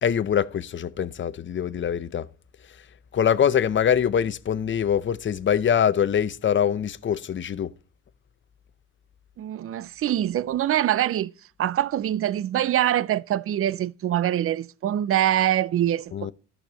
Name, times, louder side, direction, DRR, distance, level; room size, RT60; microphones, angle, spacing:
voice 1, 0.0-2.3 3.1-7.7 16.1-16.3, left 8 dB, 40° left, 0.6 m, -23 dB
voice 2, 9.4-11.3 11.6-16.3, right 11 dB, 50° right, 0.5 m, -24 dB
13.5 x 6.5 x 3.0 m
cardioid pair, 90°, 30 cm